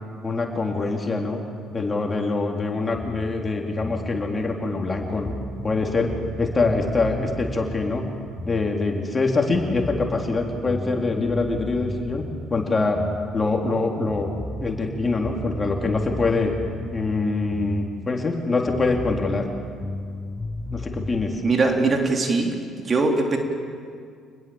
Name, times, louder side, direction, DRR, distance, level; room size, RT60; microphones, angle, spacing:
voice 1, 0.2-1.4 1.7-5.3 5.6-6.1 6.4-8.0 8.5-12.2 12.5-13.0 13.3-14.3 14.6-16.5 16.9-19.5 20.7-21.4, left 3 dB, 30° left, 1 dB, 4.0 m, -24 dB
sound 1, 2.9-9.2 9.5-13.8 14.1-18.4 18.7-21.2, left 1 dB, 5° left, 7.7 m, -35 dB
voice 2, 21.4-22.6 22.9-23.4, right 3 dB, 40° right, 2 dB, 3.4 m, -21 dB
28.0 x 20.5 x 7.3 m, 2.2 s
hypercardioid pair, 55°, 0 cm